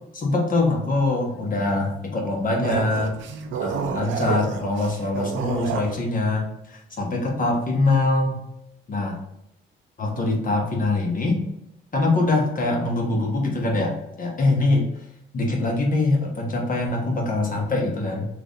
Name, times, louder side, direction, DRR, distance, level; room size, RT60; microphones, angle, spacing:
voice 1, 0.0-3.1 3.6-8.4 8.9-9.2 10.0-11.4 11.9-14.9 15.3-18.3, left 2 dB, 45° left, 0 dB, 1.0 m, -23 dB
sound 1, 2.6-6.0, right 7 dB, 75° right, 0.5 m, -29 dB
3.1 x 2.5 x 3.9 m, 0.82 s
cardioid pair, 90°, 20 cm